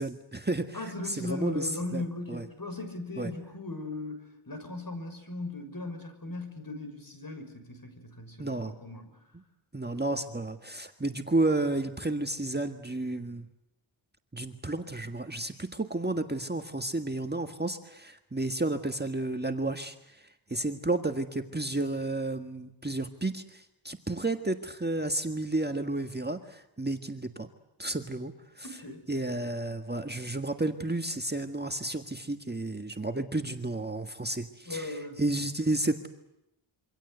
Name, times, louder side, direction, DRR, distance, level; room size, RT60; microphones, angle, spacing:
voice 1, 0.0-0.8 1.0-2.0 2.3-2.4 3.2-3.3 8.4-8.7 9.7-13.5 14.3-27.5 27.8-28.7 29.1-36.1, right 2 dB, 20° right, 6 dB, 1.6 m, -32 dB
voice 2, 0.7-4.2 4.5-9.1 28.6-29.1 34.6-35.2, left 2 dB, 45° left, 7 dB, 6.5 m, -38 dB
27.0 x 25.0 x 8.1 m, 0.87 s
wide cardioid pair, 85°, 49 cm